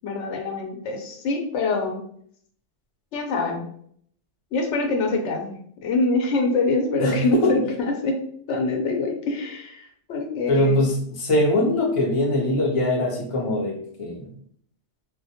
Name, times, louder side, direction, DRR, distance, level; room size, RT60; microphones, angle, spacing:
voice 1, 0.0-2.0 3.1-3.6 4.5-5.5 5.8-8.2 8.5-10.9, left 3 dB, 70° left, 2 dB, 0.8 m, -25 dB
voice 2, 7.0-7.6 10.5-14.3, left 1 dB, 40° left, -1 dB, 0.4 m, -22 dB
2.1 x 2.1 x 2.8 m, 0.63 s
omnidirectional pair, 1.3 m